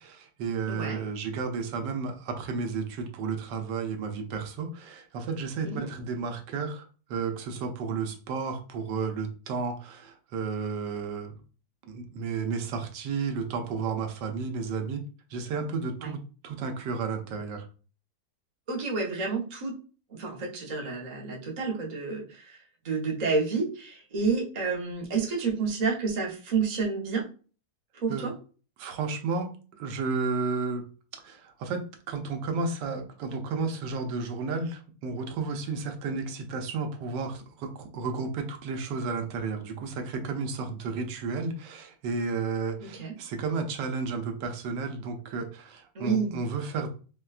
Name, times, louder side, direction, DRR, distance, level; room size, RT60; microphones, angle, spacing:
voice 1, 0.0-11.4 11.8-15.0 15.3-17.7 28.1-28.3 28.8-30.9 31.1-46.9, right 4 dB, 85° right, 5 dB, 1.2 m, -32 dB
voice 2, 0.7-1.0 5.6-5.9 16.0-16.1 18.7-19.7 20.1-27.3 27.9-28.3 42.8-43.1 45.9-46.4, right 4 dB, 40° right, -2 dB, 0.6 m, -30 dB
4.3 x 2.2 x 2.3 m, 0.36 s
omnidirectional pair, 1.8 m